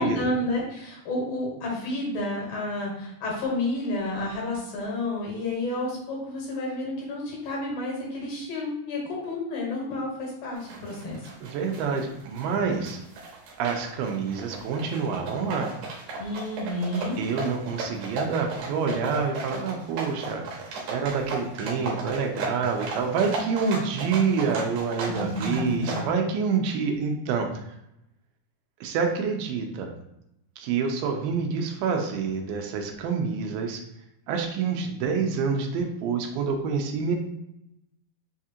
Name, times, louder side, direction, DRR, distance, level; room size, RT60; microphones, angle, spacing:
voice 1, 0.0-11.2 16.2-17.2 25.0-26.1, left 1 dB, 85° left, -3 dB, 3.1 m, -30 dB
sound 1, 10.6-26.0, right 3 dB, 70° right, 2.0 m, -35 dB
voice 2, 11.4-13.0 13.6-15.7 17.2-20.6 20.9-27.7 28.8-29.9 30.6-33.8 34.3-37.2, right 5 dB, 85° right, 3 dB, 2.3 m, -27 dB
6.3 x 2.4 x 2.7 m, 0.83 s
omnidirectional pair, 3.9 m